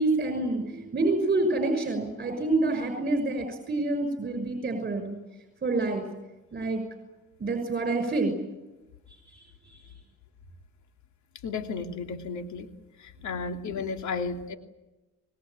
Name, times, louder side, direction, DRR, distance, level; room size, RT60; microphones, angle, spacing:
voice 1, 0.0-5.2 5.6-6.0 6.5-6.8 7.4-8.3 9.3-9.8, right 2 dB, 35° right, 6 dB, 6.0 m, -27 dB
voice 2, 11.4-12.7 13.0-14.6, left 4 dB, 70° left, 5 dB, 2.9 m, -33 dB
26.0 x 20.5 x 9.0 m, 1.0 s
cardioid pair, 90°, 30 cm